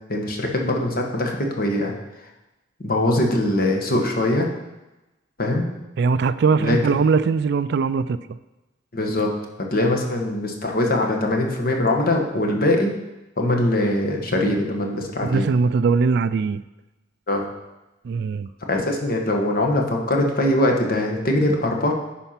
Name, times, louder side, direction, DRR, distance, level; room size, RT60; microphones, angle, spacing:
voice 1, 0.1-1.9 2.8-4.5 5.4-5.7 6.6-6.8 8.9-9.3 9.7-12.9 13.4-15.5 17.3-17.4 18.7-21.9, left 1 dB, 50° left, 2 dB, 1.4 m, -22 dB
voice 2, 6.0-8.2 15.2-16.6 18.0-18.5, right 5 dB, 60° right, 14 dB, 0.3 m, -20 dB
10.0 x 4.4 x 5.8 m, 1.0 s
head